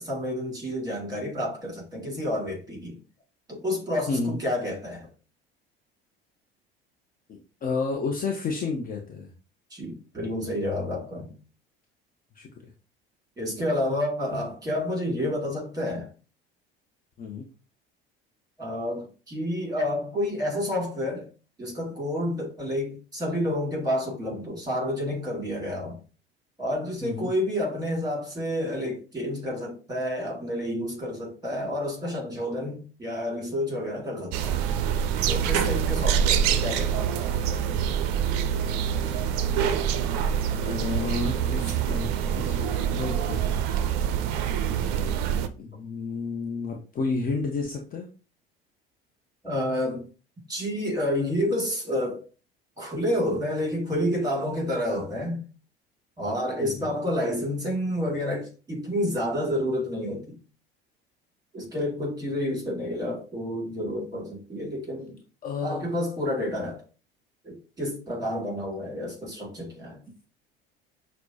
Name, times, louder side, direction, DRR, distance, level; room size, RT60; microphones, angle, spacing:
voice 1, 0.0-3.0 3.5-5.1 9.7-11.3 13.4-16.1 18.6-21.3 21.6-26.0 26.6-34.6 35.3-37.1 44.0-44.1 49.4-50.1 50.5-52.2 52.8-55.4 56.2-60.4 61.5-65.2 65.6-66.8 67.4-70.0, left 1 dB, 10° right, 2.1 m, -29 dB
voice 2, 7.3-9.3 12.3-12.7 17.2-17.5 27.0-27.3 40.6-42.1 42.4-43.4 45.6-48.1 56.6-56.9 65.4-65.9, left 4 dB, 30° left, 0.6 m, -31 dB
sound 1, 34.3-45.5, right 8 dB, 50° right, 0.5 m, -25 dB
5.9 x 2.1 x 2.7 m
figure-of-eight pair, 65°, 30 cm